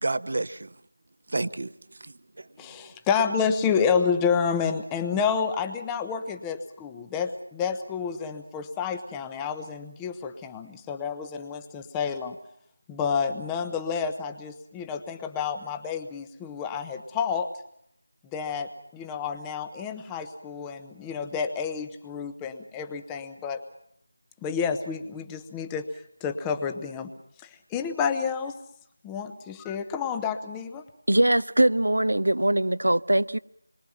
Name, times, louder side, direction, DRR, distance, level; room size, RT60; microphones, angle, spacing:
voice 1, 0.0-0.8 1.3-2.9, right 2 dB, 50° right, 1.1 m, -32 dB
voice 2, 2.6-12.4 12.9-17.5 18.3-23.6 24.4-25.9 26.2-27.1 27.4-28.6 29.0-30.8, left 6 dB, 10° left, 1.0 m, -29 dB
voice 3, 31.1-33.4, right 1 dB, 75° right, 0.9 m, -22 dB
27.5 x 23.0 x 5.8 m
figure-of-eight pair, 170°, 0 cm